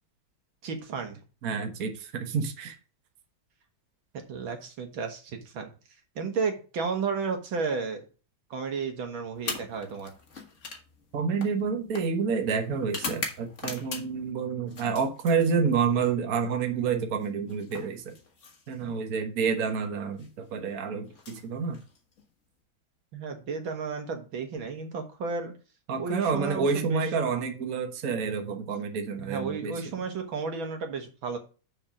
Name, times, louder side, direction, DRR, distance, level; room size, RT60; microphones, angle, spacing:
voice 1, 0.6-1.2 4.3-5.7 6.2-8.1 8.5-10.1 23.1-25.5 26.0-27.0 29.2-31.4, right 5 dB, 80° right, 5 dB, 2.3 m, -33 dB
voice 2, 1.4-2.7 11.1-18.1 18.7-21.8 25.9-29.8, right 5 dB, 50° right, 5 dB, 1.5 m, -28 dB
sound 1, 9.4-14.3 14.7-15.9 17.1-19.0 20.0-20.3 21.1-22.2, left 4 dB, 40° left, 1.8 m, -40 dB
6.6 x 6.0 x 5.0 m, 0.34 s
omnidirectional pair, 2.2 m